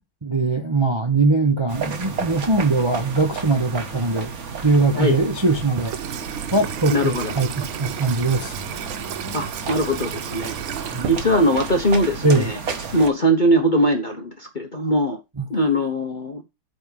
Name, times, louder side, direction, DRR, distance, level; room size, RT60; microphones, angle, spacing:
voice 1, 0.2-4.3 4.6-6.0 6.5-8.6 10.9-11.1 12.2-12.5 15.4-15.5, right 3 dB, 30° right, 0.5 m, -21 dB
sound 1, 1.7-13.1, right 5 dB, 45° right, 1.5 m, -32 dB
Water tap faucet / Sink (filling or washing), 5.5-11.8, right 10 dB, 75° right, 1.7 m, -33 dB
voice 2, 6.9-7.3 9.3-10.6 11.1-12.6 12.9-15.2 15.5-16.4, equal, 35° left, 0.8 m, -21 dB
8.6 x 4.3 x 6.5 m
omnidirectional pair, 2.4 m